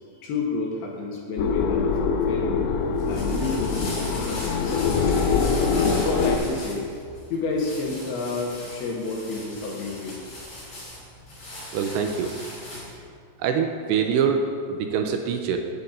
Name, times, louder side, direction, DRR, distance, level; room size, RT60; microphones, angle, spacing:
voice 1, 0.2-2.7 3.1-5.1 5.6-6.9 7.3-10.2, left 3 dB, 70° left, -2 dB, 2.8 m, -30 dB
sound 1, 1.4-6.4, left 5 dB, 90° left, 2.2 m, -24 dB
sound 2, 2.8-13.0, left 1 dB, 35° left, 3.3 m, -39 dB
voice 2, 11.7-12.3 13.4-15.6, right 6 dB, 85° right, 4 dB, 2.6 m, -24 dB
16.0 x 8.6 x 2.6 m, 2.2 s
omnidirectional pair, 5.2 m